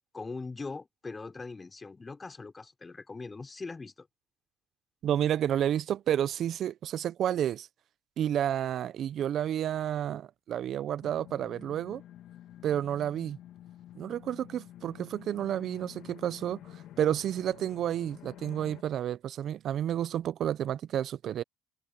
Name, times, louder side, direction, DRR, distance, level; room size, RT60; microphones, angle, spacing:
voice 1, 0.1-4.1, left 3 dB, 25° left, 4.3 m, -41 dB
voice 2, 5.0-7.7 8.2-12.0 12.6-13.4 13.9-21.4, right 10 dB, 55° right, 1.0 m, -30 dB
sound 1, 11.0-18.8, left 12 dB, 65° left, 1.8 m, -50 dB
hypercardioid pair, 65°, 0 cm